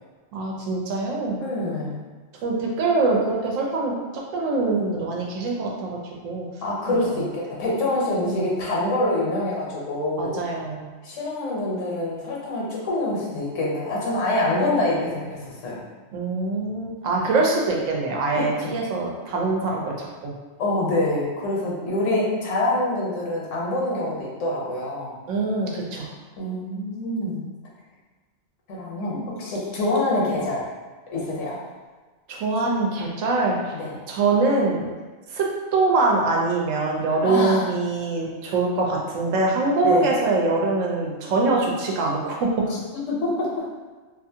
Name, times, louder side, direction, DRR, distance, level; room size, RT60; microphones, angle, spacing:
voice 1, 0.3-1.4 2.4-6.0 6.2-6.5 6.9-7.0 8.2-8.4 10.2-10.9 16.1-20.3 25.3-26.1 29.1-29.3 32.3-33.7 34.1-34.9 35.3-35.5 35.7-42.5, right 3 dB, 85° right, -2 dB, 1.0 m, -23 dB
voice 2, 1.4-2.0 6.6-10.4 11.0-15.8 18.3-18.7 20.6-25.2 26.4-27.4 28.7-30.7 31.1-31.6 33.7-34.0 37.2-37.7 39.8-40.1 42.9-43.7, left 1 dB, 75° left, -4 dB, 1.1 m, -25 dB
2.6 x 2.5 x 2.7 m, 1.3 s
omnidirectional pair, 1.3 m